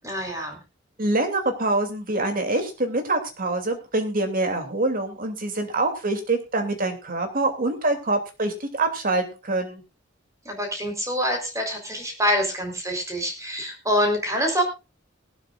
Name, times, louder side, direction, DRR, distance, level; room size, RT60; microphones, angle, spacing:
voice 1, 0.0-0.6 10.4-14.6, equal, 15° right, 3 dB, 4.1 m, -25 dB
voice 2, 1.0-9.8, right 2 dB, 45° right, 5 dB, 2.9 m, -25 dB
20.0 x 12.5 x 2.5 m, 0.29 s
head